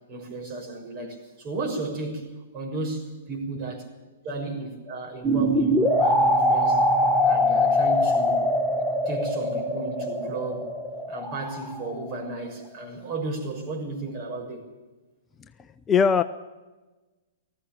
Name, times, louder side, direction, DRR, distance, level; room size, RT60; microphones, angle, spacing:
voice 1, 0.1-2.2 2.5-3.8 4.2-6.8 7.2-8.4 9.0-10.7 11.1-14.6, right 2 dB, 35° right, 2 dB, 6.4 m, -34 dB
sound 1, 5.2-12.1, left 1 dB, 5° left, 1.5 m, -23 dB
voice 2, 15.6-16.2, left 6 dB, 20° left, 10 dB, 0.7 m, -21 dB
19.0 x 15.5 x 8.9 m, 1.2 s
figure-of-eight pair, 110°, 0 cm